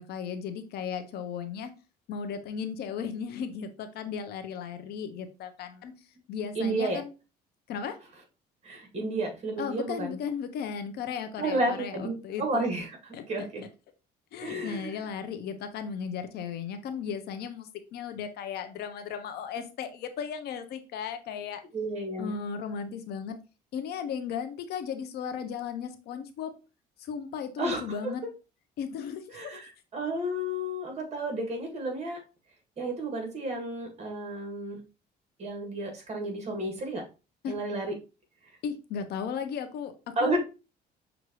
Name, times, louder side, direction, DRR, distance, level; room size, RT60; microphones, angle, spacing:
voice 1, 0.0-1.7 2.1-5.9 6.3-7.1 7.7-8.0 9.6-12.7 13.1-13.5 14.3-21.6 22.2-23.4 23.7-26.5 27.0-28.2 28.8-29.6 37.4-37.5 38.6-40.4, left 7 dB, 70° left, 9 dB, 0.7 m, -36 dB
voice 2, 6.6-7.0 8.6-10.2 11.4-13.6 14.4-15.0 21.7-22.4 27.6-27.8 29.3-32.2 32.8-34.8 35.4-37.0 37.5-37.9 40.2-40.4, right 1 dB, 40° right, 3 dB, 1.8 m, -32 dB
6.0 x 2.6 x 3.0 m, 0.31 s
cardioid pair, 110°, 17 cm